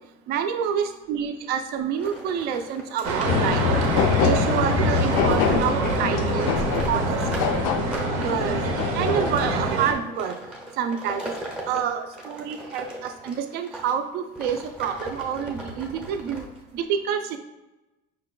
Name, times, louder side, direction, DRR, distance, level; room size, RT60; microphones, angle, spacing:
voice 1, 0.3-3.6 4.2-6.5 6.9-7.2 7.4-7.7 8.2-8.7 8.9-10.3 10.8-11.3 11.7-16.5 16.7-17.4, right 8 dB, 50° right, 7 dB, 0.4 m, -28 dB
sound 1, 1.9-13.9 14.3-16.8, right 1 dB, 5° right, 0.6 m, -39 dB
sound 2, 3.0-9.9, right 4 dB, 90° right, 0.7 m, -26 dB
sound 3, 3.2-9.7, left 7 dB, 80° left, 0.4 m, -25 dB
5.5 x 2.2 x 3.8 m, 1.0 s
cardioid pair, 170°, 20 cm